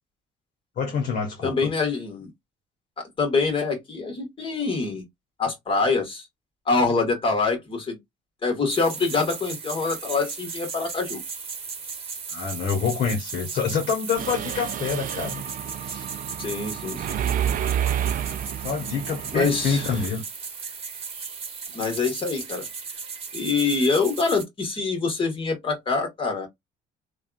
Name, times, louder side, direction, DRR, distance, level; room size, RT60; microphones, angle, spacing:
voice 1, 0.8-1.5 12.3-15.4 15.8-16.1 18.6-20.2, left 6 dB, 50° left, 1.2 m, -27 dB
voice 2, 1.4-2.3 3.0-5.0 5.4-6.3 6.7-8.0 8.4-11.2 16.4-17.2 19.3-19.9 21.7-22.7 23.3-26.5, left 4 dB, 30° left, 1.6 m, -25 dB
sound 1, 8.7-24.4, right 5 dB, 35° right, 1.1 m, -36 dB
Mechanisms, 14.2-20.1, right 10 dB, 55° right, 0.4 m, -30 dB
3.3 x 2.4 x 2.4 m
cardioid pair, 110°, 17 cm